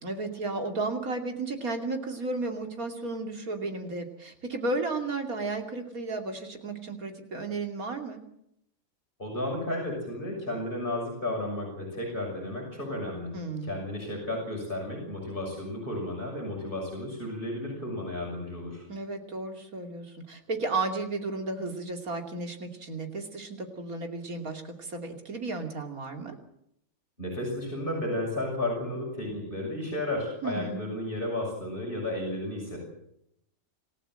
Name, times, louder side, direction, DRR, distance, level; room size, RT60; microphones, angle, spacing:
voice 1, 0.0-8.2 13.3-13.8 18.9-26.4 30.4-30.9, right 3 dB, 85° right, 4 dB, 3.2 m, -33 dB
voice 2, 9.2-13.3 13.6-18.9 27.2-32.8, left 1 dB, 40° left, -1 dB, 6.7 m, -33 dB
27.0 x 15.0 x 7.8 m, 0.75 s
omnidirectional pair, 1.5 m